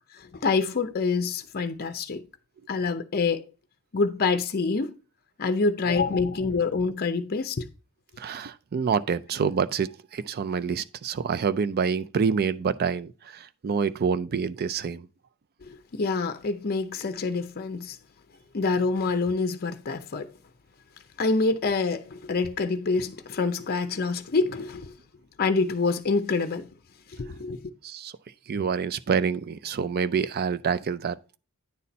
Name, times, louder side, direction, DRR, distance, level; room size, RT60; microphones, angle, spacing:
voice 1, 0.1-2.2 2.7-3.5 3.9-4.9 5.4-7.6 15.6-18.0 18.5-20.3 21.2-24.9 25.4-26.7 27.2-27.7, left 4 dB, 45° left, 0.6 m, -26 dB
voice 2, 8.2-15.1 27.8-28.1 28.5-31.4, right 6 dB, 45° right, 0.4 m, -27 dB
9.5 x 4.2 x 4.1 m
head